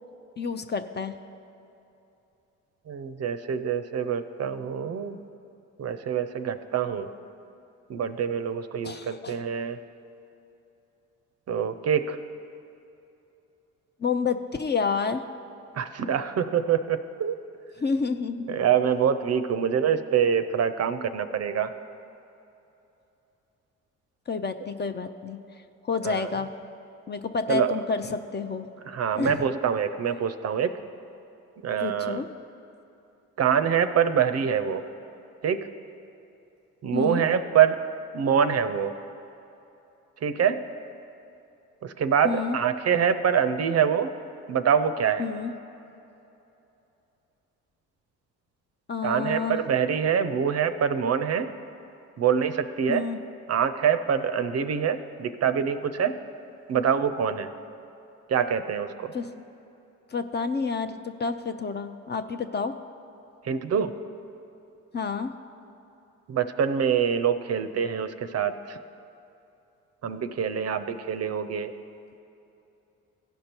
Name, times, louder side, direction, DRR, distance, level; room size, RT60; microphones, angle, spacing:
voice 1, 0.4-1.2 8.8-9.4 14.0-15.2 17.8-18.5 24.3-25.4 25.8-26.5 27.1-28.7 29.1-29.4 31.8-32.3 36.9-37.2 42.2-42.6 45.2-45.5 48.9-49.6 52.9-53.2 59.1-59.3 60.1-62.7 64.9-65.3, left 5 dB, 30° left, 8 dB, 0.5 m, -29 dB
voice 2, 2.9-5.2 5.8-7.1 7.9-9.8 11.5-12.2 15.7-17.4 18.5-21.7 26.0-26.3 27.5-27.8 28.9-30.8 31.6-32.2 33.4-34.8 35.4-35.7 36.8-37.8 38.1-38.9 40.2-40.6 41.8-44.1 44.5-45.3 49.0-51.5 52.2-53.1 53.5-56.2 56.7-57.5 58.3-59.1 63.4-63.9 66.3-68.8 70.0-71.7, right 7 dB, 45° right, 10 dB, 0.5 m, -25 dB
16.0 x 5.3 x 4.4 m, 2.9 s
supercardioid pair, 65°, 35 cm